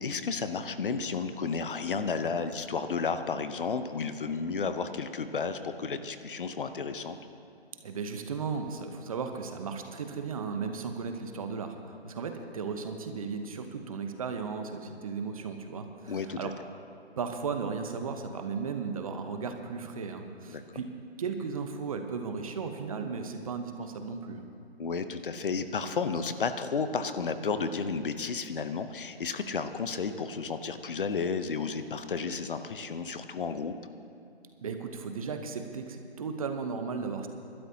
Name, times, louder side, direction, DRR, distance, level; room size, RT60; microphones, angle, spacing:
voice 1, 0.0-7.2 16.1-16.5 20.5-20.6 24.8-33.7, left 5 dB, 55° left, 10 dB, 0.8 m, -32 dB
voice 2, 7.8-16.5 17.2-20.9 21.2-24.4 34.6-37.3, right 5 dB, 35° right, 6 dB, 0.9 m, -35 dB
27.0 x 12.0 x 2.8 m, 2.6 s
figure-of-eight pair, 150°, 32 cm